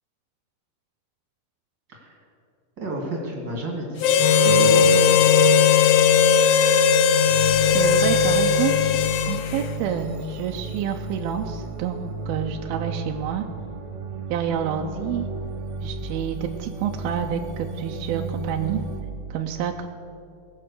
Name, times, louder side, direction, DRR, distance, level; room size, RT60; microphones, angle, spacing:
voice 1, 2.8-5.2, right 1 dB, 35° right, -1 dB, 2.3 m, -31 dB
Harmonica, 4.0-9.7, left 8 dB, 85° left, 2.7 m, -19 dB
Wind instrument woodwind instrument, 4.2-10.2, left 3 dB, 65° left, 1.5 m, -23 dB
sound 1, 7.2-19.0, right 3 dB, 55° right, 2.3 m, -34 dB
voice 2, 7.7-8.7 9.3-13.5 14.3-15.3 15.8-18.8 19.3-19.9, right 9 dB, 80° right, 3 dB, 2.3 m, -28 dB
19.5 x 7.7 x 6.6 m, 2.5 s
omnidirectional pair, 4.8 m